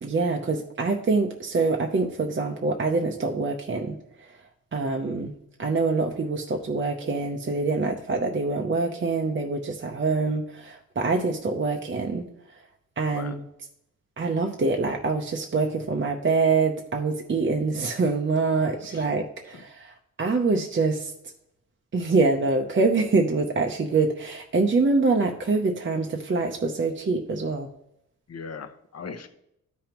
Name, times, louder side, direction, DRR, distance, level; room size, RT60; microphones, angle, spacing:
voice 1, 0.0-4.4 4.7-5.3 5.6-12.3 13.0-13.4 14.2-21.1 21.9-27.7, right 3 dB, 35° right, 2 dB, 0.7 m, -25 dB
voice 2, 28.3-29.3, left 5 dB, 50° left, 8 dB, 0.9 m, -38 dB
13.0 x 5.2 x 3.0 m, 0.77 s
wide cardioid pair, 125°, 33 cm